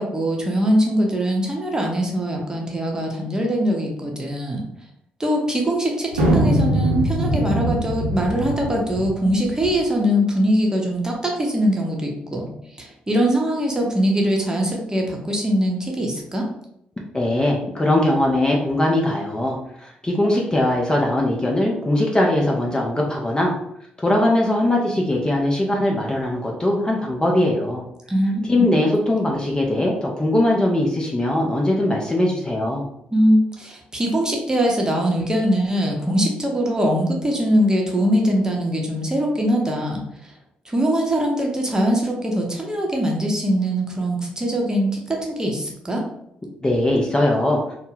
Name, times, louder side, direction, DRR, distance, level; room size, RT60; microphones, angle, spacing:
voice 1, 0.0-4.6 5.2-12.5 12.8-16.5 28.1-28.8 33.1-40.3 40.6-46.1, equal, 15° right, 0 dB, 0.7 m, -22 dB
sound 1, 6.1-9.8, right 1 dB, 85° right, 0.4 m, -21 dB
voice 2, 17.1-23.5 24.0-27.8 28.4-32.9 46.6-47.6, left 1 dB, 20° left, -1 dB, 0.5 m, -20 dB
2.1 x 2.0 x 3.1 m, 0.76 s
figure-of-eight pair, 40°, 4 cm